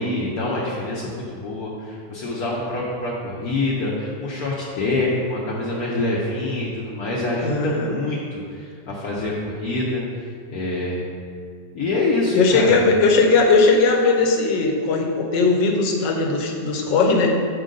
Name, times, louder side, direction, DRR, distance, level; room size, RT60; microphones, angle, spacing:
voice 1, 0.0-10.0 10.5-11.0 11.7-12.8, left 2 dB, 65° left, -5 dB, 1.2 m, -25 dB
voice 2, 7.4-7.9 12.3-17.3, left 3 dB, 80° left, 2 dB, 1.4 m, -18 dB
6.4 x 5.3 x 3.8 m, 2.2 s
omnidirectional pair, 1.9 m